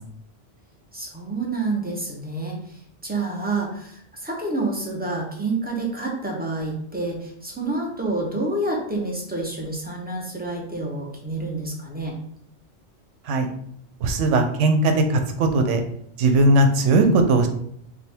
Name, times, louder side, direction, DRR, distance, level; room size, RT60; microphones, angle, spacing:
voice 1, 0.9-12.2, right 2 dB, 10° right, -1 dB, 0.6 m, -28 dB
voice 2, 14.0-15.8 16.2-17.5, right 2 dB, 85° right, 6 dB, 1.0 m, -18 dB
3.4 x 2.3 x 4.3 m, 0.68 s
omnidirectional pair, 1.2 m